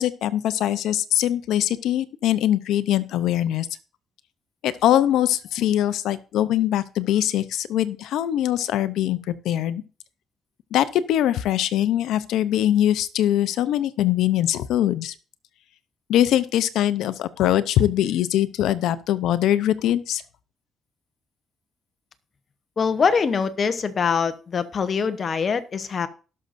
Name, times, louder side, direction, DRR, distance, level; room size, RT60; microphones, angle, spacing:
voice 1, 0.0-3.7 4.6-9.8 10.7-15.1 16.1-20.2, left 12 dB, 85° left, 14 dB, 0.7 m, -22 dB
voice 2, 22.8-26.1, left 5 dB, 45° left, 10 dB, 1.0 m, -23 dB
18.0 x 6.5 x 2.6 m, 0.36 s
cardioid pair, 90°, 0 cm